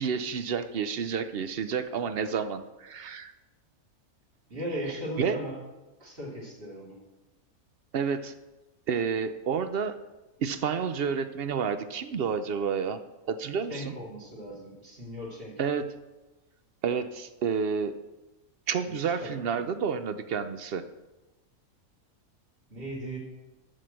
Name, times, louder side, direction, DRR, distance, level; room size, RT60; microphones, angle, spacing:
voice 1, 0.0-3.3 5.2-5.4 7.9-8.3 8.9-9.9 10.4-13.0 13.3-14.0 15.6-16.0 16.8-17.9 18.7-20.8, right 6 dB, 60° right, 11 dB, 0.6 m, -30 dB
voice 2, 4.5-5.6 6.0-7.0 13.7-15.6 18.8-19.7 22.7-23.2, equal, 40° right, -3 dB, 2.8 m, -38 dB
12.5 x 4.8 x 7.5 m, 1.1 s
omnidirectional pair, 1.5 m